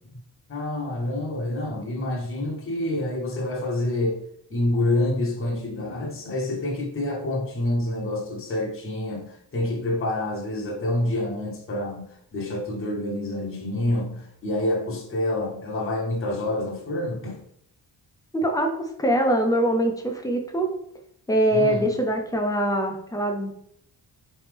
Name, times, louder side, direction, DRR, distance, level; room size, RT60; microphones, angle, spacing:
voice 1, 0.5-4.2 4.5-17.4 21.5-21.9, left 1 dB, 30° left, -1 dB, 0.9 m, -27 dB
voice 2, 18.3-20.7 21.3-23.5, right 1 dB, 10° left, 3 dB, 0.6 m, -23 dB
4.2 x 3.4 x 3.4 m, 0.71 s
wide cardioid pair, 150°, 42 cm